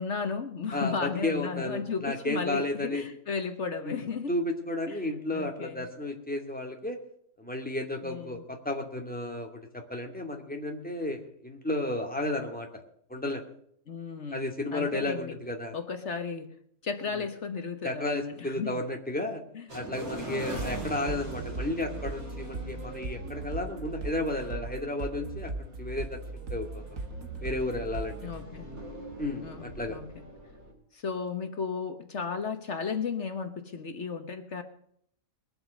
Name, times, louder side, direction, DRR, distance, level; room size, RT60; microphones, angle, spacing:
voice 1, 0.0-4.3 4.9-5.1 5.3-5.9 8.0-8.4 13.9-14.4 14.7-15.3 15.7-16.5 16.8-18.8 19.5-19.6 20.2-20.7 28.2-28.8 29.4-30.2 30.9-34.6, left 5 dB, 55° left, 8 dB, 1.4 m, -34 dB
voice 2, 0.7-3.0 3.8-4.0 4.3-7.0 7.4-9.6 9.9-12.8 13.1-13.4 14.3-15.8 17.8-19.4 19.7-26.2 26.5-26.8 27.4-28.2 29.2-30.0, left 1 dB, 5° left, 2 dB, 2.4 m, -33 dB
sound 1, 19.7-30.7, right 2 dB, 85° right, 4.8 m, -43 dB
sound 2, 20.6-28.4, right 3 dB, 70° right, 2.0 m, -38 dB
21.5 x 7.9 x 6.4 m, 0.66 s
omnidirectional pair, 1.4 m